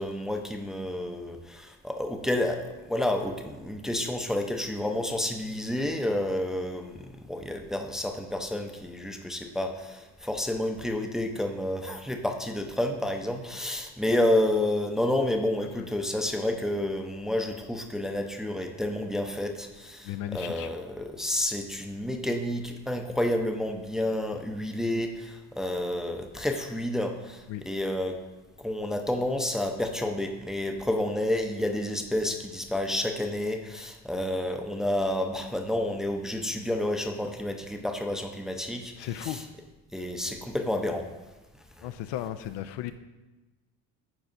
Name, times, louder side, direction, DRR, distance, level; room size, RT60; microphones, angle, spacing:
voice 1, 0.0-28.2 28.6-39.5 39.9-41.1 41.8-41.9, left 1 dB, ahead, 4 dB, 0.5 m, -30 dB
voice 2, 20.0-20.7 27.5-27.6 39.0-39.4 41.8-42.9, left 12 dB, 65° left, 11 dB, 0.5 m, -35 dB
10.5 x 4.2 x 2.5 m, 1.1 s
supercardioid pair, 65°, 45 cm